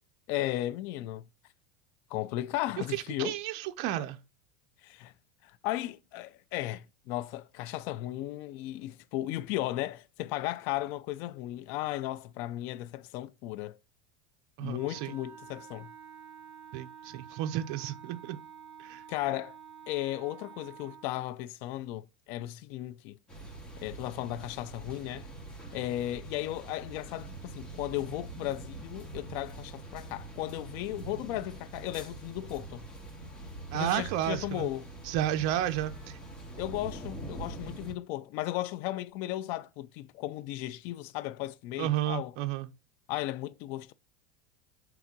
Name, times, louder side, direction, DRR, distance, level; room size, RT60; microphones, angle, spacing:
voice 1, 0.3-1.3 2.1-3.4 4.8-5.1 5.4-13.8 14.6-15.9 19.1-19.6 19.9-23.2 23.8-25.3 25.7-32.8 33.7-34.9 36.6-42.3 43.1-43.9, left 15 dB, 60° left, 0.4 m, -35 dB
voice 2, 3.2-4.2 14.6-15.1 16.7-18.4 18.8-19.0 33.7-34.7 35.1-36.2 41.8-42.7, right 12 dB, 60° right, 0.6 m, -32 dB
Wind instrument woodwind instrument, 14.7-21.1, right 8 dB, 35° right, 1.6 m, -49 dB
sound 1, 23.3-37.9, right 2 dB, 20° left, 2.4 m, -44 dB
6.0 x 3.6 x 5.9 m
supercardioid pair, 120°, 4 cm